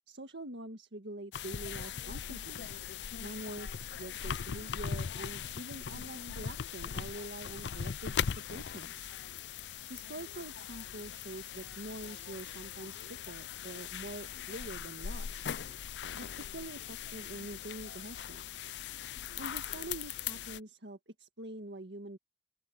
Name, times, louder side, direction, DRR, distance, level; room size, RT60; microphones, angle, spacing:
voice 1, 0.1-2.7 3.2-8.1 8.5-9.1 9.9-15.5 16.1-18.5 19.4-22.2, right 2 dB, 85° right, 1.8 m, -45 dB
sound 1, 1.3-20.6, left 8 dB, 80° left, 0.5 m, -40 dB
open air
head